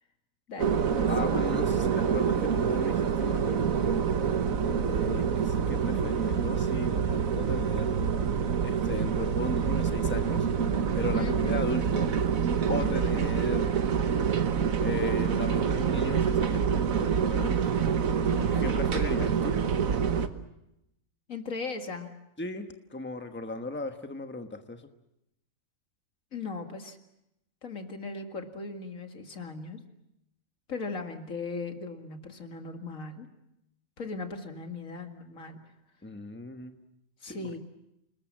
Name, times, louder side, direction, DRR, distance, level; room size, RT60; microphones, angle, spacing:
voice 1, 0.5-1.3 11.1-11.6 12.8-13.2 18.3-18.9 21.3-22.1 26.3-27.0 27.6-29.8 30.7-33.3 34.0-35.6 37.2-37.6, left 4 dB, 80° left, 5 dB, 2.4 m, -38 dB
sound 1, 0.6-20.3, right 7 dB, 90° right, 1.6 m, -26 dB
voice 2, 1.1-4.0 4.7-8.2 8.6-10.5 10.9-12.1 12.7-13.8 14.8-17.6 18.6-19.6 22.4-24.9 36.0-36.8 37.2-37.6, left 2 dB, 10° left, 7 dB, 1.2 m, -37 dB
29.0 x 20.0 x 7.5 m, 0.85 s
omnidirectional pair, 1.4 m